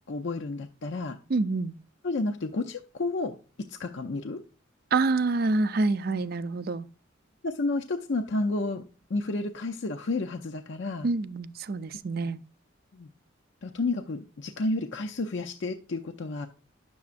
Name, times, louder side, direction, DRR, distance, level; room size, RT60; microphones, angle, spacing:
voice 1, 0.1-1.2 2.0-4.4 7.4-11.1 12.9-13.1 13.6-16.5, left 2 dB, 65° left, 0.6 m, -31 dB
voice 2, 1.3-1.7 4.9-6.9 11.0-12.4, right 3 dB, 50° right, 0.4 m, -27 dB
10.5 x 7.0 x 2.5 m
head